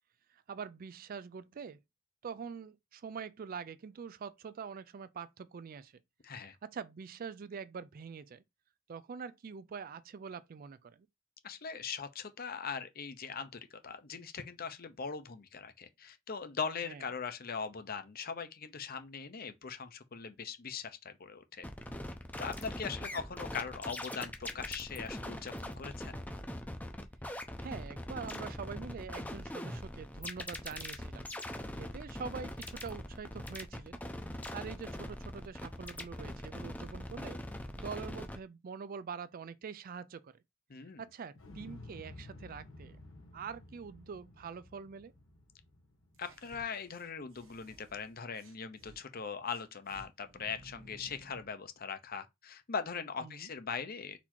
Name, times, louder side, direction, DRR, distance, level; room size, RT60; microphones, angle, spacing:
voice 1, 0.3-1.8 2.2-5.9 6.6-8.4 8.9-11.1 16.8-17.0 27.6-31.3 31.8-34.0 34.5-37.4 37.8-40.4 41.0-43.0 43.3-45.1 53.2-53.5, right 6 dB, 45° right, 0.4 m, -44 dB
voice 2, 6.2-6.6 11.4-21.6 22.4-26.1 40.7-41.0 46.2-54.2, left 6 dB, 45° left, 0.7 m, -40 dB
sound 1, 21.6-38.4, left 1 dB, 10° left, 0.6 m, -42 dB
Explosion, 41.4-47.4 47.7-47.8, left 1 dB, 90° left, 1.2 m, -53 dB
sound 2, 46.1-49.0 49.5-51.5, right 1 dB, 85° right, 1.2 m, -57 dB
4.2 x 2.8 x 4.3 m
head